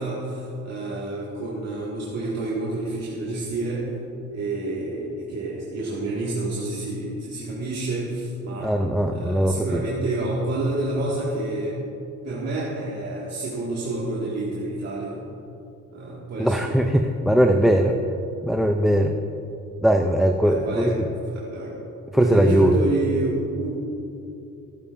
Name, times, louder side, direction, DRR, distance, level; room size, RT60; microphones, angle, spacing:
voice 1, 0.0-3.9 4.3-8.7 9.1-11.8 12.2-15.2 15.9-16.8 20.4-21.8 22.1-23.7, right 2 dB, 55° right, -7 dB, 2.1 m, -29 dB
voice 2, 8.6-9.8 16.4-18.0 18.4-19.1 19.8-21.1 22.1-22.8, equal, ahead, 4 dB, 0.5 m, -20 dB
16.0 x 10.5 x 2.6 m, 2.8 s
cardioid pair, 90°, 30 cm